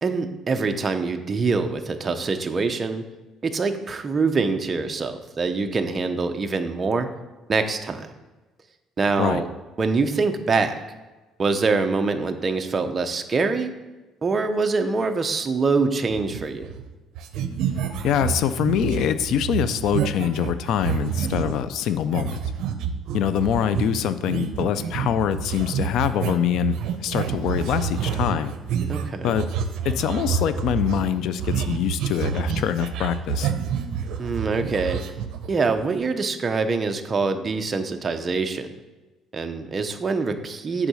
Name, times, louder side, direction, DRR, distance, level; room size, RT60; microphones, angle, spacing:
voice 1, 0.0-3.0 3.4-7.1 7.5-8.1 9.0-9.5 9.8-10.8 11.4-13.7 14.2-16.7 28.9-29.4 34.2-35.0 35.5-38.7 39.3-40.9, right 4 dB, 25° right, 7 dB, 0.5 m, -24 dB
sound 1, 16.1-16.9 17.2-21.6 22.1-35.8, right 7 dB, 70° right, 0.6 m, -28 dB
voice 2, 18.0-22.4 23.1-28.5 29.2-29.5 29.8-33.5, left 9 dB, 60° left, 12 dB, 0.4 m, -24 dB
8.2 x 3.6 x 6.2 m, 1.2 s
cardioid pair, 165°, 0 cm